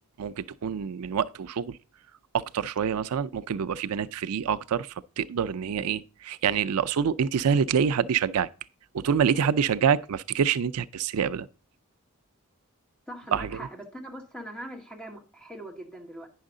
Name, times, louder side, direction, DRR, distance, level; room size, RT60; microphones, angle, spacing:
voice 1, 0.2-1.8 2.3-8.5 8.9-11.5 13.3-13.5, right 7 dB, 80° right, 0.4 m, -26 dB
voice 2, 13.1-16.3, right 1 dB, 5° left, 1.9 m, -41 dB
9.7 x 6.4 x 3.7 m
head